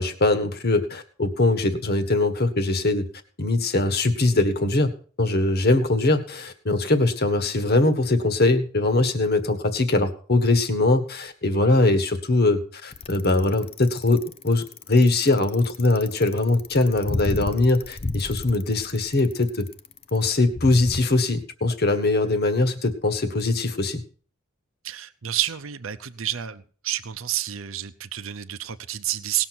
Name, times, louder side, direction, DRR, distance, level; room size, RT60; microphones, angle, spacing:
voice 1, 0.0-3.1 3.4-4.9 5.2-19.7 20.1-24.0, left 2 dB, 50° left, 9 dB, 1.5 m, -22 dB
Bicycle, 12.9-21.0, left 3 dB, 30° left, 0.5 m, -32 dB
voice 2, 24.8-29.4, right 12 dB, 70° right, 10 dB, 0.7 m, -29 dB
18.5 x 6.6 x 6.1 m, 0.43 s
head